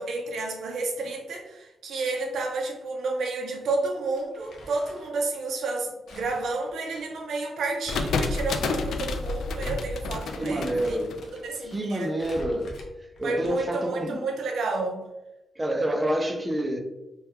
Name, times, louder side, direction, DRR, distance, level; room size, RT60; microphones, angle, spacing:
voice 1, 0.0-11.0 11.2-12.2 13.2-15.0, right 3 dB, 75° right, 0.5 m, -31 dB
Crumpling crinkling, 4.1-5.2 6.1-8.2 8.5-8.6 9.4-9.6 9.9-11.5 12.2-13.8, left 2 dB, 60° left, 0.7 m, -46 dB
sound 1, 7.9-11.8, left 3 dB, 90° left, 0.3 m, -29 dB
voice 2, 10.4-11.2 11.6-12.7 13.2-14.2 15.6-16.8, right 1 dB, 15° right, 0.4 m, -28 dB
3.5 x 2.2 x 2.9 m
wide cardioid pair, 165°, 0 cm